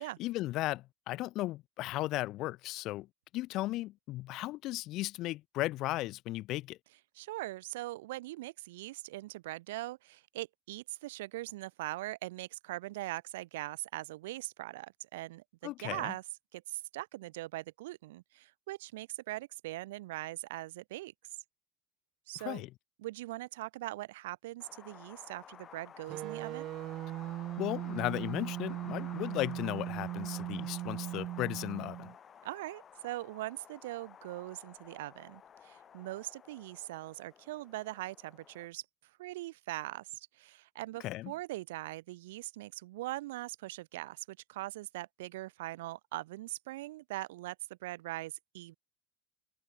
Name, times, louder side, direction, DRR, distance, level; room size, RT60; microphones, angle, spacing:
voice 1, 0.0-3.1 3.3-6.8 15.6-16.1 22.4-22.7 27.6-32.1 41.0-41.3, left 17 dB, 60° left, 1.0 m, -36 dB
voice 2, 7.1-16.2 16.5-21.1 22.3-22.6 23.0-26.7 32.4-38.8 39.2-47.6 47.8-48.7, right 18 dB, 85° right, 1.0 m, -41 dB
Wind, 24.6-38.7, left 8 dB, 40° left, 3.6 m, -54 dB
sound 1, 26.1-32.2, right 15 dB, 55° right, 1.6 m, -39 dB
supercardioid pair, 95°, 0 cm